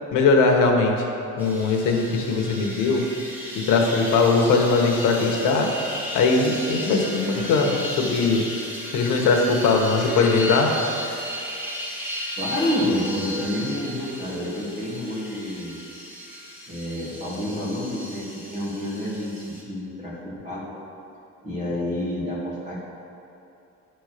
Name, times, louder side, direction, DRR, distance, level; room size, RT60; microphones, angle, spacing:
voice 1, 0.1-1.0 1.4-3.1 3.5-5.7 6.1-8.5 8.9-10.7, left 4 dB, 85° left, 1 dB, 1.3 m, -20 dB
sound 1, 1.4-19.6, left 1 dB, 5° right, 1.4 m, -35 dB
voice 2, 12.4-15.8 16.7-20.6 21.4-22.8, left 1 dB, 25° right, -7 dB, 2.3 m, -29 dB
10.0 x 4.6 x 6.6 m, 2.8 s
cardioid pair, 180°, 30 cm